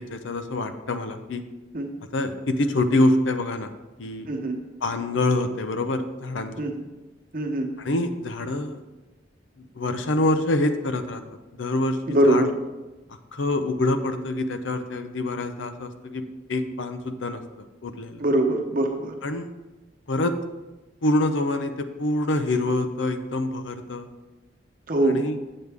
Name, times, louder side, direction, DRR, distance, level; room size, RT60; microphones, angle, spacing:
voice 1, 0.0-1.4 2.1-3.7 4.0-4.3 4.8-6.5 7.8-8.8 9.6-11.2 11.6-12.5 13.1-16.2 16.5-17.4 17.8-18.2 19.2-19.5 20.1-20.3 21.0-24.1 25.0-25.4, left 2 dB, 90° left, 8 dB, 0.7 m, -26 dB
voice 2, 4.3-4.6 6.6-6.8 7.3-7.7 12.1-12.5 18.2-19.1 24.9-25.2, right 1 dB, 45° right, 3 dB, 1.0 m, -22 dB
8.0 x 7.7 x 3.5 m, 1.1 s
head